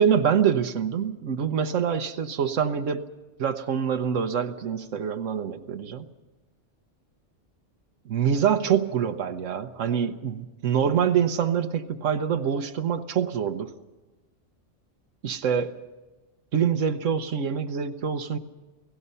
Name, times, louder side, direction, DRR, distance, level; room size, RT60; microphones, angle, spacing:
voice 1, 0.0-3.0 3.4-6.0 8.1-13.7 15.2-15.8 16.5-18.4, right 7 dB, 85° right, 6 dB, 1.3 m, -25 dB
29.0 x 17.0 x 5.5 m, 1.2 s
omnidirectional pair, 1.3 m